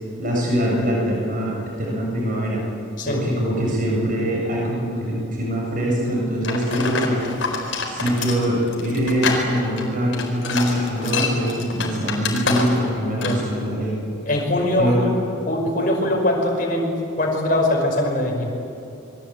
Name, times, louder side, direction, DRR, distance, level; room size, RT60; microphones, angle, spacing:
voice 1, 0.2-2.6 3.1-7.2 7.9-14.0 14.8-15.0, equal, 45° right, -3 dB, 7.2 m, -23 dB
sound 1, 6.4-12.9 13.2-13.5, left 4 dB, 70° left, 4.5 m, -26 dB
voice 2, 14.3-15.1 15.5-18.5, left 1 dB, 45° left, 0 dB, 5.3 m, -22 dB
27.5 x 22.5 x 8.6 m, 2.6 s
head